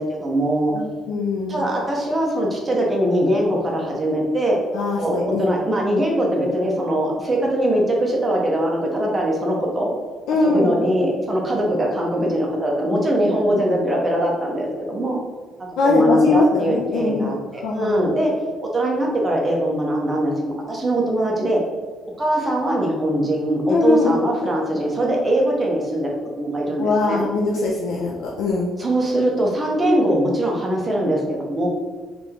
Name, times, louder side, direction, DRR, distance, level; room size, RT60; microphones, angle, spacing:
voice 1, 0.0-0.7 1.5-4.6 5.0-9.9 10.4-15.2 15.6-18.3 18.7-21.6 22.2-27.2 28.8-31.7, right 1 dB, 20° right, -2 dB, 0.9 m, -21 dB
voice 2, 0.7-1.6 4.7-5.5 10.3-10.8 15.8-17.3 17.6-18.1 23.7-24.2 26.8-28.7, left 3 dB, 90° left, -3 dB, 0.5 m, -21 dB
3.7 x 3.3 x 3.6 m, 1.4 s
cardioid pair, 140°, 0 cm